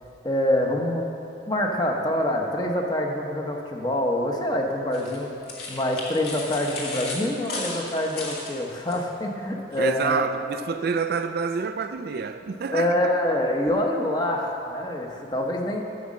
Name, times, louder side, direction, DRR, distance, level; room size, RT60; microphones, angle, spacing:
voice 1, 0.2-1.1 1.5-5.3 5.7-10.3 12.7-15.8, left 1 dB, 20° left, 0.9 m, -25 dB
sound 1, 4.9-9.0, left 2 dB, 55° left, 1.9 m, -35 dB
voice 2, 9.8-12.9, right 5 dB, 55° right, 0.4 m, -27 dB
9.4 x 6.2 x 7.4 m
head